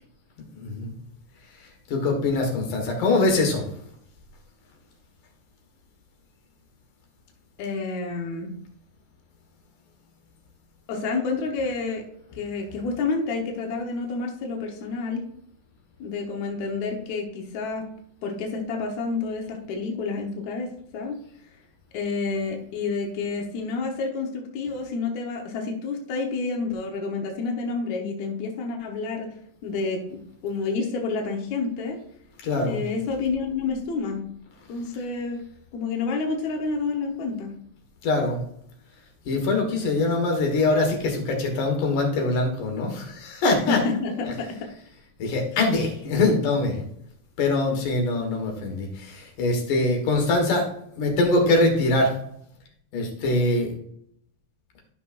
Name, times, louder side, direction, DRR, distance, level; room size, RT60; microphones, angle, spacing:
voice 1, 0.5-0.9 1.6-3.6 32.4-32.8 38.0-38.4 39.3-43.8 44.2-44.3 45.2-46.8 47.4-50.7 51.0-52.2 52.9-53.8, left 2 dB, 90° left, 2 dB, 3.1 m, -23 dB
voice 2, 7.6-8.5 10.9-12.0 12.4-15.2 16.0-17.9 18.2-21.2 21.9-29.3 29.6-32.0 32.7-34.2 34.7-35.4 35.7-37.5 43.7-44.6, left 4 dB, 70° left, 1 dB, 2.4 m, -29 dB
13.0 x 6.0 x 2.5 m, 0.68 s
omnidirectional pair, 3.6 m